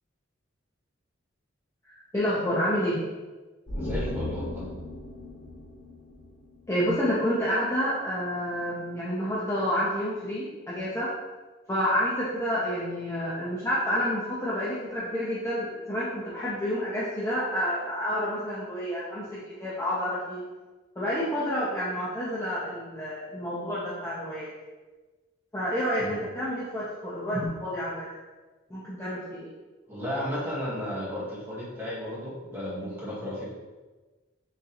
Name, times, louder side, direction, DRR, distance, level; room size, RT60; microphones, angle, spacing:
voice 1, 1.9-3.0 6.7-11.1 11.7-20.4 21.0-24.5 25.5-28.1 28.7-29.5, equal, 15° left, -9 dB, 0.6 m, -29 dB
sound 1, 3.7-7.1 7.4-7.5, left 1 dB, 80° left, 0.9 m, -36 dB
voice 2, 3.8-4.7 26.0-26.2 29.9-33.5, equal, 10° right, -9 dB, 1.3 m, -34 dB
3.9 x 3.6 x 2.9 m, 1.3 s
head